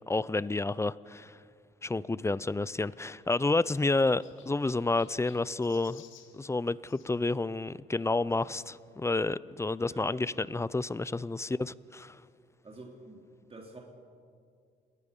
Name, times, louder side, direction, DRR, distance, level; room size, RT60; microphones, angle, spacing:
voice 1, 0.1-1.4 1.8-6.0 6.3-12.2, left 3 dB, 15° left, 19 dB, 0.5 m, -30 dB
Chirp tweet, 2.9-7.1 8.3-8.5 9.2-9.3 9.5-9.6 10.9-11.0, left 9 dB, 85° left, 2.2 m, -59 dB
voice 2, 12.6-13.8, right 2 dB, 30° right, -1 dB, 3.2 m, -48 dB
28.0 x 20.0 x 5.4 m, 2.2 s
cardioid pair, 90°, 20 cm